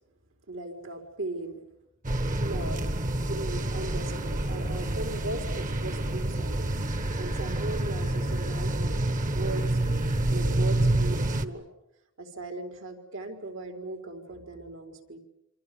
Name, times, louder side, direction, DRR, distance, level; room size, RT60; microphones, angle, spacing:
voice 1, 0.5-1.6 2.4-9.1 9.3-9.8 10.3-11.6 12.2-15.2, right 2 dB, 80° right, 5 dB, 4.3 m, -38 dB
sound 1, 2.0-11.5, right 1 dB, 40° right, 1.3 m, -28 dB
27.5 x 26.0 x 7.0 m, 0.82 s
head